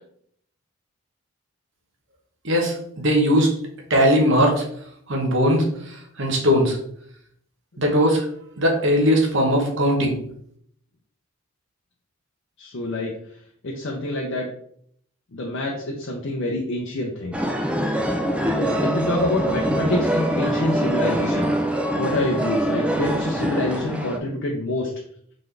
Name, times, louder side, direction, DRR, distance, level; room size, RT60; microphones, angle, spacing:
voice 1, 2.4-3.5 3.9-4.6 5.1-6.8 7.8-8.2 8.6-10.2, equal, 55° right, 1 dB, 1.1 m, -19 dB
voice 2, 12.6-13.1 13.6-14.5 15.3-17.4 18.6-21.5 21.9-24.9, left 2 dB, 55° left, -1 dB, 0.6 m, -26 dB
sound 1, 17.3-24.2, right 1 dB, 5° right, 0.3 m, -24 dB
3.9 x 3.8 x 3.3 m, 0.66 s
head